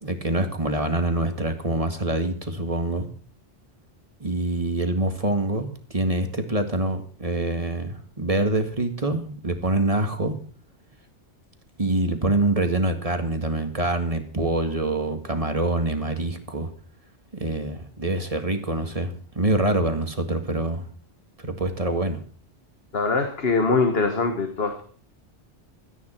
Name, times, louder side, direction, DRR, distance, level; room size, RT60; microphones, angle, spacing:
voice 1, 0.0-3.1 4.2-10.4 11.8-16.7 17.4-20.9 21.4-22.2, right 2 dB, 30° right, 6 dB, 1.9 m, -25 dB
voice 2, 22.9-24.8, left 4 dB, 55° left, 6 dB, 1.7 m, -23 dB
17.0 x 13.0 x 4.5 m, 0.42 s
omnidirectional pair, 1.2 m